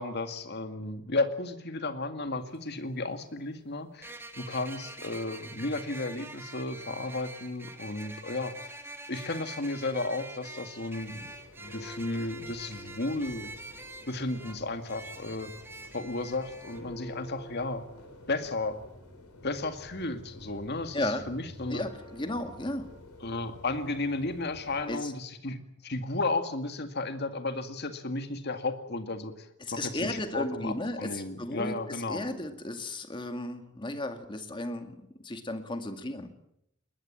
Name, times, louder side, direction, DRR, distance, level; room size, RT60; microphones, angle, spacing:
voice 1, 0.0-8.7 9.1-11.3 11.6-13.5 14.1-15.5 15.9-17.8 18.3-18.8 19.4-21.9 23.2-29.5 29.7-32.3, left 2 dB, 50° left, 8 dB, 2.1 m, -34 dB
sound 1, 2.4-2.5 4.0-16.8, right 2 dB, 10° right, 1.8 m, -45 dB
Church bell, 10.9-25.0, left 1 dB, 85° left, 5.2 m, -49 dB
voice 2, 21.7-22.9 24.9-25.1 29.6-36.3, left 1 dB, 20° left, 7 dB, 2.0 m, -34 dB
21.0 x 20.5 x 8.7 m, 0.78 s
head